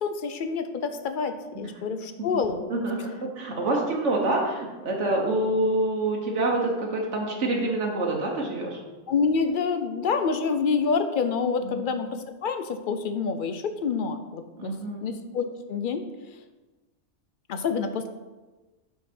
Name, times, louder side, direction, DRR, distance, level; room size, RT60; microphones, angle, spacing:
voice 1, 0.0-2.6 9.1-14.7 15.0-16.0 17.5-18.1, left 5 dB, 60° left, 8 dB, 0.6 m, -27 dB
voice 2, 2.7-8.8 11.6-11.8 14.6-15.1, right 2 dB, 80° right, -1 dB, 1.3 m, -27 dB
5.9 x 5.9 x 4.3 m, 1.2 s
omnidirectional pair, 1.2 m